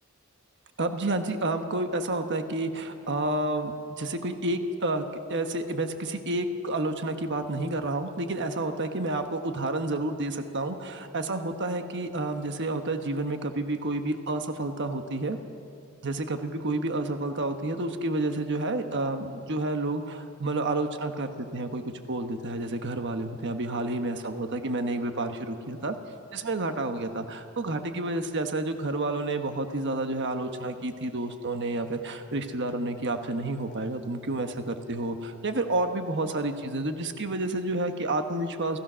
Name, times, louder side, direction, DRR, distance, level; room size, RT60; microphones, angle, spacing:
voice 1, 0.8-15.4 16.0-21.8 22.1-25.9 26.3-38.8, right 2 dB, 55° right, 6 dB, 1.3 m, -30 dB
28.5 x 16.0 x 6.3 m, 2.5 s
head